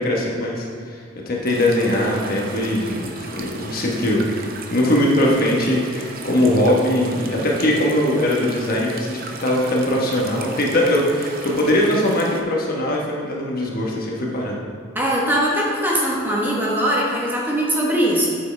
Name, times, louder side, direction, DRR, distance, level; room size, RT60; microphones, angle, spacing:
voice 1, 0.0-4.3 4.7-14.6, left 1 dB, 45° left, -2 dB, 1.2 m, -21 dB
sound 1, 1.4-12.4, right 4 dB, 45° right, 0.7 m, -37 dB
voice 2, 14.9-18.3, equal, 10° right, -4 dB, 1.2 m, -21 dB
8.6 x 7.2 x 3.3 m, 2.3 s
head